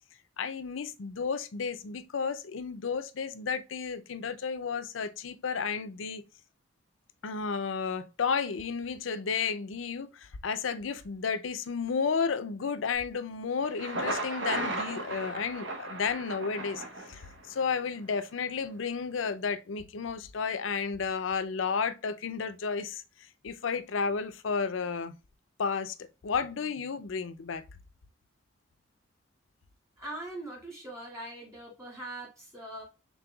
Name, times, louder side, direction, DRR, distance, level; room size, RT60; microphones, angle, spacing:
voice 1, 0.4-6.2 7.2-16.8 17.1-17.2 17.5-23.0 23.4-25.2 25.6-27.6, left 5 dB, 90° left, 0.5 m, -32 dB
Thunder, 13.6-17.6, right 2 dB, 75° right, 1.2 m, -35 dB
voice 2, 30.0-32.8, right 1 dB, 15° right, 2.6 m, -41 dB
5.3 x 3.7 x 2.3 m
head